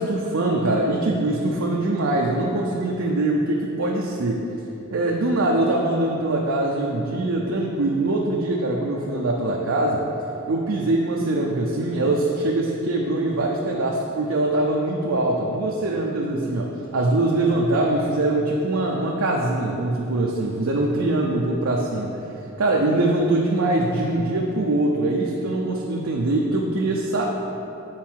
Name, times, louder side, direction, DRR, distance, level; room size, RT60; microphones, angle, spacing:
voice 1, 0.0-4.4 4.9-10.1 10.5-22.1 22.6-27.2, right 2 dB, 65° right, -2 dB, 0.6 m, -23 dB
7.4 x 4.7 x 4.5 m, 2.9 s
head